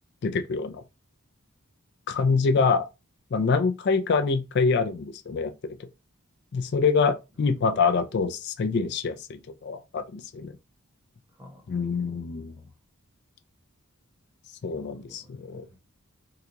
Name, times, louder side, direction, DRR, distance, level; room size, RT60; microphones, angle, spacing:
voice 1, 0.2-0.8 2.1-2.9 3.3-5.5 6.5-10.5 11.7-12.5 14.6-15.6, left 4 dB, 50° left, 0.3 m, -25 dB
voice 2, 11.4-11.8 12.0-12.1 12.6-12.7 14.7-15.8, left 1 dB, 10° right, 0.8 m, -52 dB
3.7 x 2.2 x 2.8 m
head